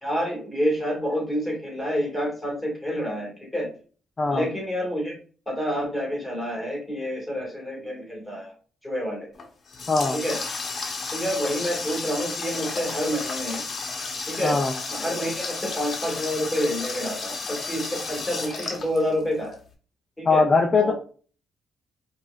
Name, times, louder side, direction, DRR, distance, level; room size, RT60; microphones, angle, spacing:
voice 1, 0.0-3.7 4.3-5.2 5.5-8.5 8.8-9.3 10.1-10.4 11.1-13.6 14.3-14.6 14.9-19.6 20.2-20.4 20.8-20.9, equal, 5° left, -1 dB, 1.8 m, -28 dB
Water tap faucet, 9.3-19.5, left 4 dB, 45° left, 0.9 m, -33 dB
voice 2, 9.9-10.2 14.4-14.7 20.2-20.9, left 4 dB, 30° left, 2 dB, 0.5 m, -20 dB
4.6 x 2.5 x 2.4 m, 0.40 s
cardioid pair, 90°, 0 cm